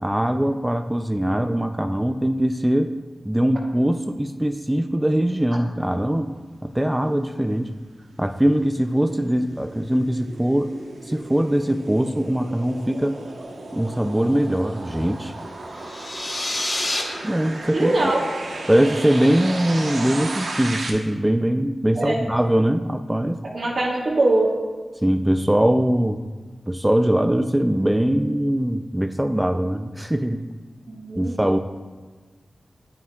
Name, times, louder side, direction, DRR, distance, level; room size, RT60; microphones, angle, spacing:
voice 1, 0.0-2.9 3.3-6.3 6.6-7.7 8.2-10.8 11.0-13.2 13.7-15.3 17.2-18.1 18.7-23.4 25.0-26.2 26.7-30.4 31.2-31.6, right 1 dB, 10° right, 8 dB, 0.3 m, -21 dB
sound 1, 7.7-20.9, right 2 dB, 90° right, 1.0 m, -35 dB
sound 2, 15.8-17.0, left 1 dB, 40° left, 1.1 m, -27 dB
voice 2, 17.7-18.2 21.9-22.2 23.5-24.5 30.9-31.4, right 2 dB, 70° right, -4 dB, 1.5 m, -22 dB
9.3 x 8.8 x 2.3 m, 1.4 s
wide cardioid pair, 70°, 0 cm